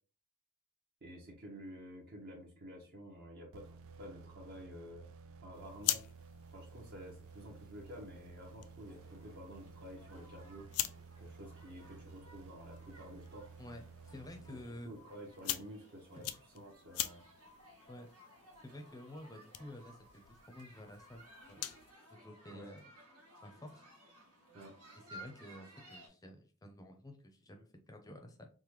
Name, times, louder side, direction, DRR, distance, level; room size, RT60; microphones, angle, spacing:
voice 1, 1.0-5.1 5.4-6.0 6.5-10.6 11.2-13.5 14.5-14.6 14.8-16.2 16.5-17.2 22.5-22.7 24.5-24.7, equal, 45° right, 0 dB, 0.7 m, -50 dB
sound 1, 3.5-15.2, right 5 dB, 65° right, 0.3 m, -54 dB
sound 2, 5.5-21.9, left 13 dB, 70° left, 0.3 m, -45 dB
sound 3, 8.8-26.1, equal, 90° right, 1.1 m, -59 dB
voice 2, 13.6-14.9 16.2-16.3 17.9-18.1 18.6-21.7 22.1-22.9 23.4-23.8 25.1-28.5, left 1 dB, 15° left, 4 dB, 0.5 m, -51 dB
3.3 x 2.1 x 3.0 m, 0.39 s
head